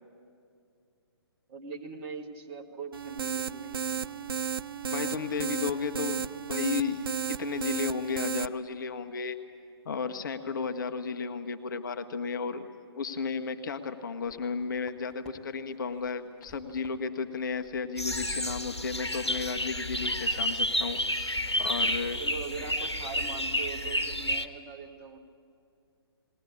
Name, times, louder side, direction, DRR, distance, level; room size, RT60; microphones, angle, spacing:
voice 1, 1.5-4.1 22.2-25.2, right 5 dB, 30° right, 2 dB, 1.7 m, -41 dB
sound 1, 2.9-8.5, right 7 dB, 60° right, 0.5 m, -33 dB
voice 2, 4.9-7.0 7.4-9.4 9.8-12.7 13.0-22.2, left 5 dB, 50° left, 9 dB, 1.1 m, -33 dB
sound 2, 14.1-15.3 15.7-17.0 17.3-18.8 19.2-19.4 19.7-20.2 20.4-20.5 21.0-21.6 21.9-22.2 22.6-22.9, right 2 dB, 5° left, 1.8 m, -54 dB
sound 3, 18.0-24.5, left 1 dB, 90° left, 1.1 m, -30 dB
20.5 x 18.5 x 8.6 m, 2.4 s
figure-of-eight pair, 130°, 14 cm